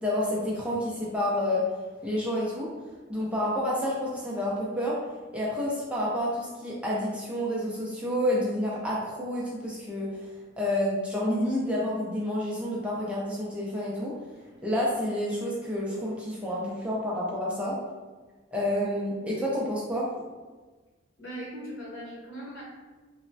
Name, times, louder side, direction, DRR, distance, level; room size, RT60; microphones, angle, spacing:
voice 1, 0.0-1.6 2.0-2.7 3.1-5.0 5.3-10.3 10.6-14.1 14.6-17.8 18.5-20.1, left 1 dB, 5° right, -6 dB, 0.4 m, -29 dB
voice 2, 21.2-22.6, equal, 75° left, -5 dB, 0.9 m, -39 dB
3.1 x 2.0 x 2.6 m, 1.3 s
head